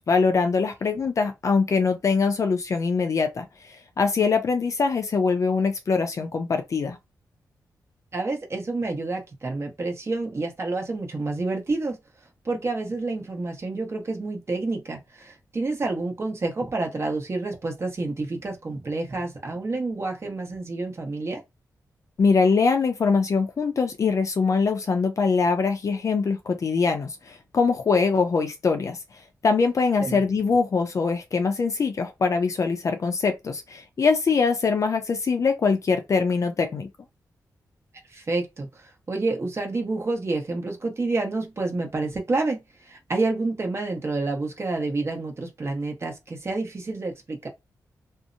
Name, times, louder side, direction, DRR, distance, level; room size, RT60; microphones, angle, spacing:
voice 1, 0.0-7.0 22.2-29.0 29.4-36.9, left 4 dB, 50° left, 0.4 m, -23 dB
voice 2, 8.1-12.0 12.4-21.4 30.0-30.2 38.1-47.5, right 3 dB, 40° right, 0.9 m, -29 dB
2.7 x 2.0 x 2.5 m
cardioid pair, 85°, 7 cm